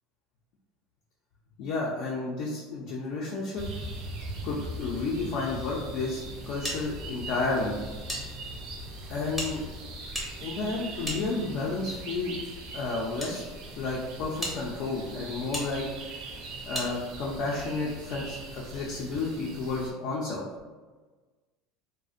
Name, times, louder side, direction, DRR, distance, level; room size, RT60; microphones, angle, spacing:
voice 1, 1.6-3.7 4.4-7.8 9.1-9.6 10.4-12.4 12.7-13.4 13.8-15.8 16.7-20.4, left 3 dB, 55° left, -4 dB, 0.4 m, -31 dB
sound 1, 3.6-19.9, right 2 dB, 50° right, 0.4 m, -41 dB
sound 2, 6.6-8.2 8.5-8.6 9.3-11.8 12.6-13.3 13.9-14.0 14.4-14.6 15.5-15.7 16.7-16.9, equal, ahead, 0.6 m, -36 dB
2.4 x 2.1 x 2.5 m, 1.3 s
cardioid pair, 150°, 0 cm